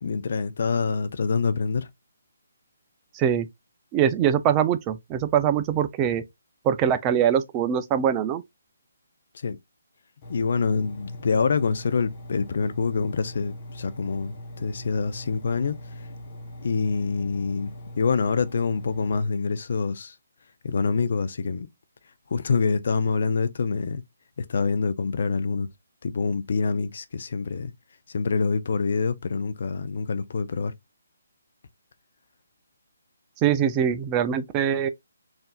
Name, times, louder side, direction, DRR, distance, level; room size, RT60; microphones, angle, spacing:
voice 1, 0.0-1.9 9.4-9.6 10.3-15.8 16.6-17.7 18.0-20.1 20.6-21.7 22.3-24.0 24.4-25.7 26.0-27.7 28.1-30.7, left 4 dB, 55° left, 0.5 m, -26 dB
voice 2, 3.1-3.5 3.9-6.2 6.6-8.4 33.4-34.9, right 9 dB, 20° right, 0.4 m, -23 dB
Engine, 10.2-19.2, left 1 dB, 35° left, 1.1 m, -41 dB
5.5 x 2.7 x 2.3 m
figure-of-eight pair, 145°, 0 cm